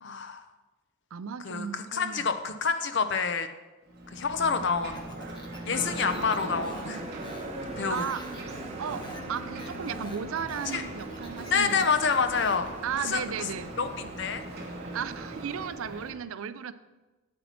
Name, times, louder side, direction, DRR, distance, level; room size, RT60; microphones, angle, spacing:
voice 1, 0.0-0.4 1.4-3.5 4.1-5.1 5.7-7.0 7.8-8.1 10.7-10.8 11.5-12.7 13.0-13.2 13.8-14.4, left 5 dB, 55° left, 9 dB, 0.6 m, -28 dB
voice 2, 1.1-2.2 5.7-6.0 7.9-8.2 8.8-11.9 12.8-13.8 14.9-16.7, right 7 dB, 70° right, 14 dB, 0.4 m, -35 dB
Ocean, 3.8-16.1, right 2 dB, 45° right, 1.4 m, -42 dB
Speech, 4.9-12.7, left 1 dB, 20° left, 0.9 m, -48 dB
sound 1, 5.8-15.7, right 1 dB, 30° right, 0.8 m, -41 dB
8.6 x 8.2 x 4.3 m, 1.2 s
head